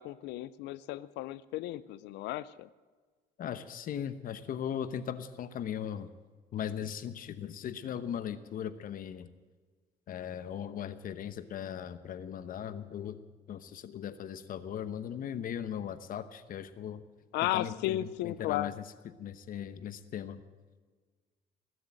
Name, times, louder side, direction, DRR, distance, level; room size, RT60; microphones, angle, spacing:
voice 1, 0.0-2.7 17.3-18.7, left 15 dB, 85° left, 17 dB, 0.5 m, -34 dB
voice 2, 3.4-6.1 6.5-9.3 10.1-13.2 13.5-17.0 17.5-18.7 19.2-20.4, left 9 dB, 55° left, 12 dB, 1.0 m, -38 dB
20.0 x 7.9 x 9.0 m, 1.4 s
cardioid pair, 110°, 17 cm